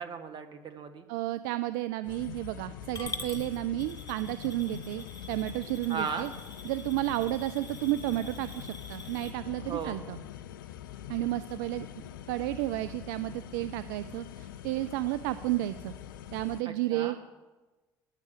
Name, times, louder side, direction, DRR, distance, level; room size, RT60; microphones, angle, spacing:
voice 1, 0.0-1.0 5.9-6.3 9.7-10.0 16.6-17.2, right 6 dB, 45° right, 7 dB, 1.5 m, -36 dB
voice 2, 1.1-6.3 6.6-10.2 11.1-11.9 12.3-15.9 16.3-17.2, right 16 dB, 70° right, 12 dB, 0.4 m, -32 dB
sound 1, 2.0-16.6, left 10 dB, 75° left, 0.4 m, -44 dB
Coin (dropping) / Glass, 2.9-9.3, left 3 dB, 30° left, 2.2 m, -45 dB
9.7 x 6.6 x 8.8 m, 1.2 s
hypercardioid pair, 60°, 11 cm